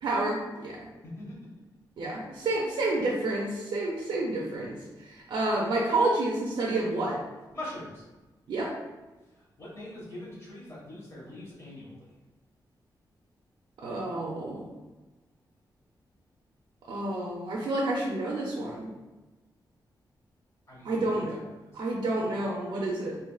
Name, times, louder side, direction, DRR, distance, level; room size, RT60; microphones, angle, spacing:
voice 1, 0.0-0.9 2.0-7.2 8.5-8.7 13.8-14.7 16.9-18.9 20.8-21.4 21.7-23.2, right 2 dB, 80° right, -3 dB, 0.5 m, -29 dB
voice 2, 1.0-1.5 7.5-8.0 9.3-12.1 20.7-21.2 21.6-21.8, left 1 dB, 35° left, -6 dB, 1.4 m, -42 dB
3.8 x 2.5 x 2.3 m, 1.2 s
wide cardioid pair, 115°, 8 cm